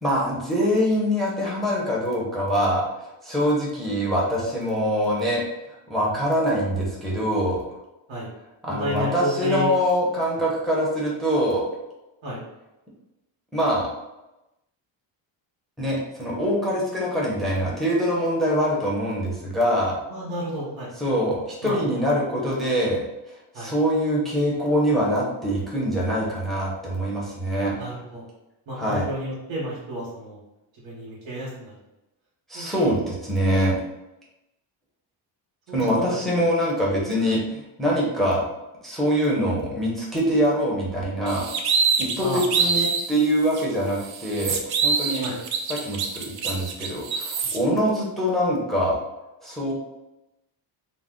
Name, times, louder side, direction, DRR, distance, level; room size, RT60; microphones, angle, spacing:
voice 1, 0.0-2.8 3.2-5.4 5.9-7.6 8.6-11.6 13.5-13.9 15.8-20.0 21.0-23.0 23.6-27.7 28.8-29.1 32.5-33.7 35.7-38.4 38.8-41.5 42.0-45.3 45.7-49.0 49.4-49.7, equal, ahead, -5 dB, 0.5 m, -24 dB
voice 2, 8.7-9.7 10.3-10.5 12.2-12.4 20.1-20.9 21.6-21.8 23.5-23.7 27.7-28.2 28.7-30.4 30.7-31.7 32.5-33.0 35.7-36.2 37.3-37.4 42.2-42.4 45.2-45.4, equal, 85° right, -7 dB, 1.0 m, -31 dB
sound 1, 41.3-43.1 43.5-43.6 44.0-47.6, right 5 dB, 55° right, 0.5 m, -25 dB
2.5 x 2.1 x 3.5 m, 0.96 s
cardioid pair, 150°, 46 cm